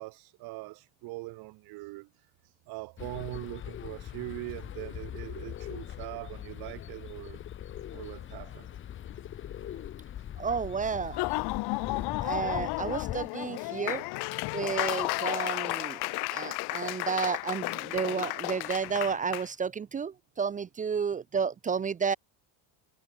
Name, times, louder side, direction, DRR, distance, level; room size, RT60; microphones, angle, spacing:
voice 1, 0.0-7.4 7.9-8.7 9.7-9.8 10.2-10.3 11.9-12.1, right 22 dB, 65° right, 1.1 m, -42 dB
sound 1, 3.0-13.3, left 11 dB, 30° left, 0.7 m, -41 dB
voice 2, 10.4-11.2 12.2-14.1 14.5-16.0 16.3-22.2, right 6 dB, 20° right, 0.5 m, -31 dB
Laughter / Applause, 11.0-19.5, left 25 dB, 65° left, 0.9 m, -33 dB
cardioid pair, 135°, 41 cm